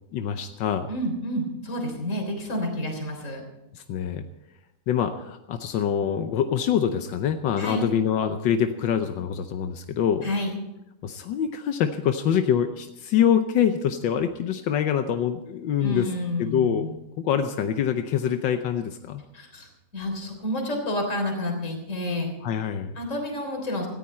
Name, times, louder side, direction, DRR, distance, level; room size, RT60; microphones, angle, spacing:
voice 1, 0.1-0.9 3.7-4.3 4.9-10.3 11.0-16.1 16.4-16.9 17.2-19.2 22.4-22.9, left 8 dB, 85° left, 8 dB, 1.5 m, -25 dB
voice 2, 0.9-3.4 7.6-7.9 10.2-10.6 15.8-16.9 19.3-19.7 19.9-22.3 23.0-23.9, left 1 dB, 40° left, 2 dB, 3.9 m, -29 dB
18.0 x 14.5 x 4.3 m, 0.90 s
omnidirectional pair, 2.0 m